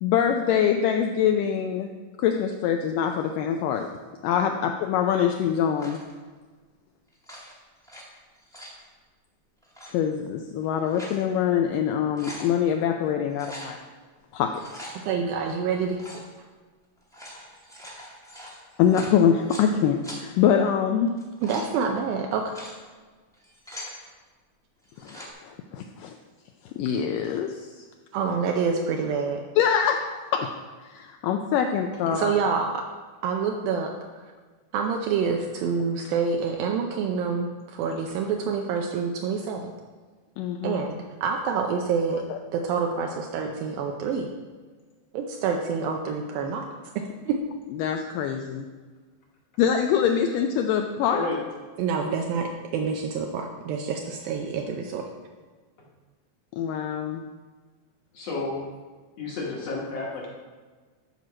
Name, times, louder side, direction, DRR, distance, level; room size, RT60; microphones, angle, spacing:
voice 1, 0.0-1.9 2.2-3.9 4.2-6.0 9.9-13.8 14.3-14.5 18.8-21.1 25.0-26.2 26.8-27.7 29.6-30.5 30.8-32.3 40.4-40.8 42.3-42.4 47.7-48.7 49.6-51.2 56.5-57.2, left 8 dB, 80° left, 4 dB, 2.0 m, -24 dB
sound 1, 5.8-6.1 7.1-8.0 8.3-8.8 9.6-9.9 10.6-11.2 11.6-11.7 12.0-12.5 13.3-13.7 14.4-14.9 15.9-16.3 17.0-19.7 20.0-20.2 21.1-21.7 22.3-22.7 23.3-24.0 24.8-25.3, equal, 5° left, 0.4 m, -42 dB
voice 2, 15.0-16.0 21.4-22.5 28.1-29.4 32.1-32.8 33.2-34.3 34.7-39.7 40.6-42.3 42.5-44.3 45.1-46.7 47.3-47.4 51.8-55.1, right 5 dB, 80° right, 2 dB, 2.4 m, -27 dB
voice 3, 58.1-58.6 59.2-60.3, left 3 dB, 60° left, -2 dB, 1.9 m, -31 dB
12.5 x 4.5 x 6.2 m, 1.4 s
omnidirectional pair, 4.2 m